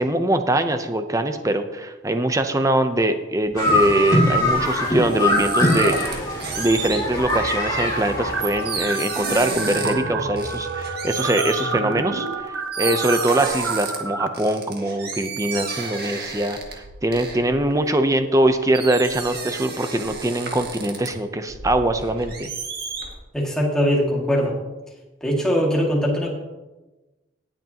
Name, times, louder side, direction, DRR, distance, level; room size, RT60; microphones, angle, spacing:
voice 1, 0.0-6.2 6.6-12.3 12.8-16.6 17.0-22.5, right 1 dB, 15° right, 8 dB, 0.6 m, -22 dB
sound 1, 3.5-7.4 7.9-10.1 10.4-11.7 12.4-12.5 12.7-14.0 14.3-18.4 18.7-21.1 21.5-23.1, right 5 dB, 55° right, 2.0 m, -33 dB
sound 2, 3.6-8.8, left 1 dB, 20° left, 2.3 m, -22 dB
sound 3, 5.0-6.0 6.3-14.3, right 3 dB, 70° right, 0.8 m, -29 dB
voice 2, 23.3-24.6 25.2-26.3, equal, 5° left, -3 dB, 2.1 m, -21 dB
18.5 x 7.9 x 2.9 m, 1.1 s
head